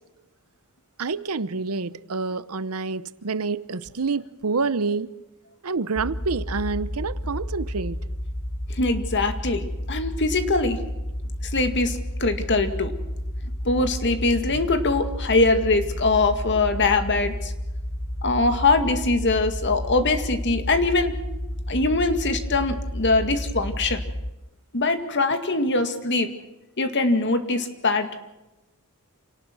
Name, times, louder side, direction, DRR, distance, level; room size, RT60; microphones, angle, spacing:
voice 1, 1.0-5.1 5.6-8.0, right 4 dB, 85° right, 0.9 m, -27 dB
sound 1, 6.0-24.3, equal, 20° left, 0.8 m, -31 dB
voice 2, 8.7-10.8 11.5-12.9 13.6-17.5 18.2-21.2 21.7-24.0 24.7-26.3 26.8-28.1, left 3 dB, 55° left, 2.1 m, -22 dB
27.0 x 18.5 x 6.2 m
head